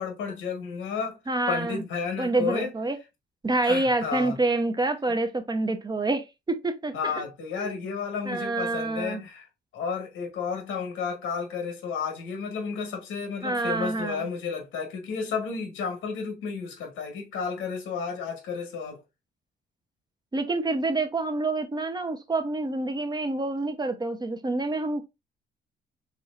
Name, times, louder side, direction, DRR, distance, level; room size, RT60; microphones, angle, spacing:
voice 1, 0.0-1.2 1.5-2.7 3.6-4.4 6.9-9.5 9.7-19.0, left 5 dB, 85° left, 1.3 m, -32 dB
voice 2, 1.3-1.8 2.2-3.0 3.4-7.1 7.6-7.7 8.2-9.2 13.4-14.3 20.3-25.0, right 2 dB, 20° right, 0.6 m, -27 dB
4.3 x 3.1 x 2.3 m
cardioid pair, 90°, 20 cm